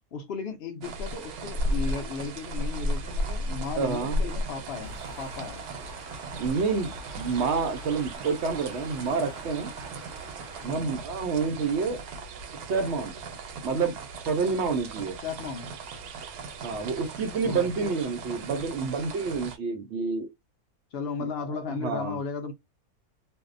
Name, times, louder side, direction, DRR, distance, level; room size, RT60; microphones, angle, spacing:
voice 1, 0.0-5.6 10.6-11.0 15.2-15.7 17.4-18.3 20.9-22.5, left 5 dB, 60° left, 0.6 m, -35 dB
sound 1, 0.8-19.6, right 1 dB, 90° right, 1.1 m, -36 dB
voice 2, 3.8-4.2 6.4-9.7 10.6-12.0 12.7-13.1 13.6-13.9 14.3-15.2 16.6-20.3 21.2-21.3 21.8-22.2, right 5 dB, 65° right, 0.7 m, -28 dB
sound 2, 4.8-10.7, right 2 dB, 30° right, 0.7 m, -45 dB
2.6 x 2.1 x 2.4 m
omnidirectional pair, 1.6 m